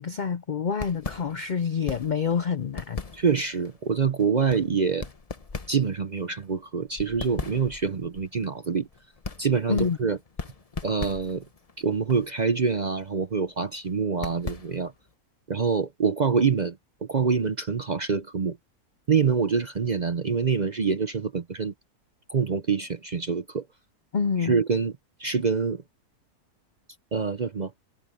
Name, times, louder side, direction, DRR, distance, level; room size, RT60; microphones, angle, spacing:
voice 1, 0.0-3.0 9.7-10.0 24.1-24.5, left 6 dB, 80° left, 0.4 m, -27 dB
sound 1, 0.7-15.1, left 4 dB, 30° left, 0.9 m, -40 dB
voice 2, 3.1-5.1 5.7-8.9 9.4-10.2 10.8-11.5 11.8-14.9 15.5-18.6 19.1-21.7 22.3-23.7 24.4-24.9 25.2-25.8 27.1-27.7, right 5 dB, 45° right, 0.5 m, -25 dB
omnidirectional pair, 1.6 m